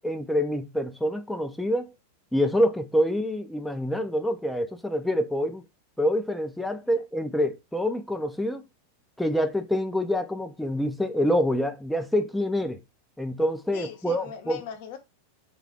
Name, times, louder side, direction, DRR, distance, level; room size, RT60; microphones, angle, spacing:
voice 1, 0.0-1.9 2.3-5.6 6.0-8.6 9.2-12.8 13.2-14.6, equal, 5° left, 0.4 m, -26 dB
voice 2, 13.7-15.0, left 8 dB, 50° left, 0.8 m, -40 dB
3.2 x 2.3 x 3.7 m
figure-of-eight pair, 90°, 0 cm